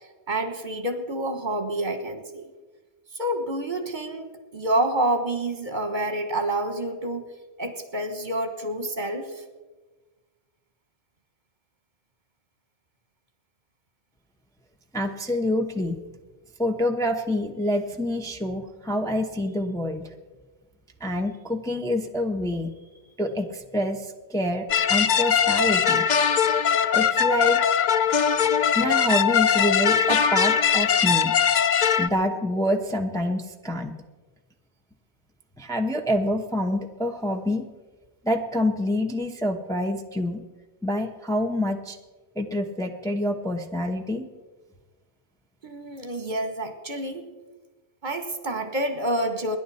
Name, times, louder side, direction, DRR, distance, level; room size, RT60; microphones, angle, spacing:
voice 1, 0.3-2.5 3.2-7.3 7.6-9.3 45.6-47.3 48.0-49.6, right 1 dB, 45° right, 7 dB, 1.6 m, -28 dB
voice 2, 14.9-16.0 16.6-20.0 21.0-22.7 23.2-26.1 26.9-27.6 28.7-31.3 32.0-33.9 35.6-37.7 38.2-40.4 40.8-42.0 42.4-44.3, left 1 dB, 5° left, 2 dB, 0.9 m, -26 dB
sound 1, 24.7-32.1, left 7 dB, 50° left, 0.6 m, -21 dB
27.0 x 11.0 x 4.2 m, 1.3 s
omnidirectional pair, 1.2 m